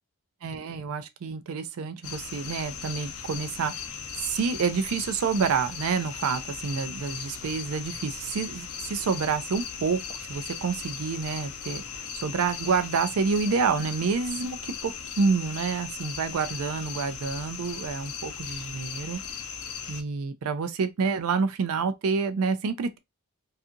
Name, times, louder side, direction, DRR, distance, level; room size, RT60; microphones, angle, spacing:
voice 1, 0.4-3.7 4.2-19.2 19.9-23.0, right 5 dB, 70° right, 0.4 m, -28 dB
sound 1, 2.0-20.0, left 7 dB, 70° left, 0.5 m, -38 dB
2.7 x 2.4 x 2.4 m
head